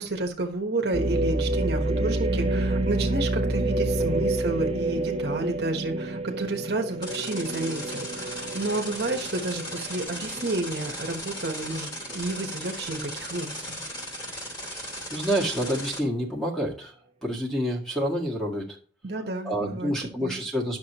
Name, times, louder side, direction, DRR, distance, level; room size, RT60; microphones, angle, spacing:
voice 1, 0.0-13.8 19.0-19.9 20.2-20.4, right 2 dB, 60° right, 3 dB, 1.3 m, -31 dB
sound 1, 0.9-10.9 11.4-11.5 12.1-12.5, right 2 dB, 35° right, 0.8 m, -28 dB
sound 2, 7.0-16.0, equal, 25° left, 2.7 m, -37 dB
voice 2, 15.1-16.9 17.2-18.8 19.4-20.8, equal, ahead, -2 dB, 1.8 m, -28 dB
10.5 x 6.3 x 3.0 m, 0.43 s
head